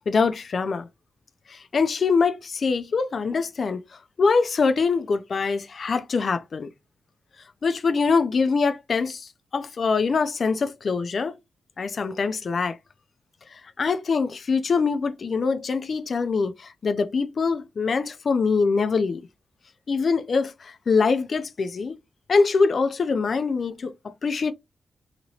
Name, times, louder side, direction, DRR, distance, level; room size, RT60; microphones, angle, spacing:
voice 1, 0.1-0.9 1.5-3.8 4.2-6.7 7.6-11.4 11.8-12.8 13.5-19.3 19.9-21.9 22.3-24.5, left 4 dB, 55° left, 0.3 m, -24 dB
2.8 x 2.7 x 2.8 m
cardioid pair, 95°, 0 cm